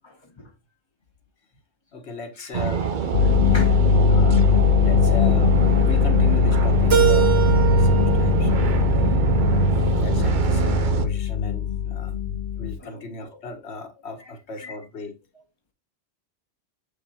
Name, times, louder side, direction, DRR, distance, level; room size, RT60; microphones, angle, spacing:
voice 1, 0.0-0.5 2.4-2.5 3.2-3.9 12.8-13.1 14.2-14.3, left 3 dB, 25° left, 1.5 m, -40 dB
voice 2, 1.9-2.9 4.0-9.1 9.4-9.7 10.0-12.2 12.6-15.2, left 3 dB, 90° left, 1.4 m, -38 dB
sound 1, 2.5-11.1, right 8 dB, 50° right, 0.8 m, -24 dB
sound 2, 3.1-12.8, left 9 dB, 60° left, 0.9 m, -20 dB
Keyboard (musical), 6.9-9.8, right 11 dB, 70° right, 1.4 m, -25 dB
6.9 x 6.5 x 2.7 m
omnidirectional pair, 1.1 m